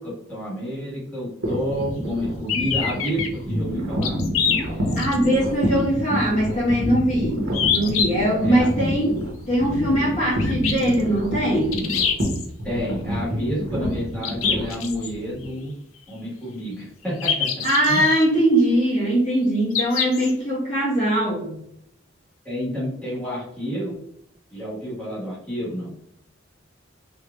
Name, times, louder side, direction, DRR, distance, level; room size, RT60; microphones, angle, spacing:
voice 1, 0.0-4.1 8.4-8.7 12.6-15.7 16.1-17.5 17.9-18.0 22.4-24.0 24.5-25.9, equal, 5° left, -8 dB, 1.4 m, -29 dB
sound 1, 1.4-15.5, equal, 65° right, 0.9 m, -28 dB
sound 2, 2.5-3.3 4.0-5.4 5.8-5.9 7.5-8.1 10.4-11.0 11.7-12.5 14.2-15.1 17.2-18.2 19.7-20.3, left 7 dB, 80° left, 0.5 m, -24 dB
voice 2, 5.0-9.2 9.5-11.9 17.6-21.6, right 1 dB, 35° left, -8 dB, 1.2 m, -21 dB
3.5 x 3.1 x 2.3 m, 0.74 s
head